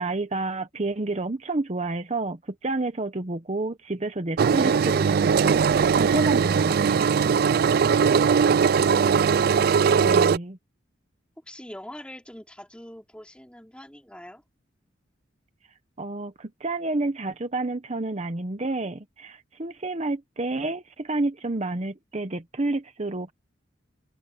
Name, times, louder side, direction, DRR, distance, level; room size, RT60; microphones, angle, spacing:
voice 1, 0.0-7.1 10.0-10.6 16.0-23.3, right 2 dB, 35° right, 0.8 m, -30 dB
Engine, 4.4-10.4, right 6 dB, 50° right, 0.3 m, -20 dB
voice 2, 11.5-14.4, left 1 dB, 5° left, 2.9 m, -45 dB
head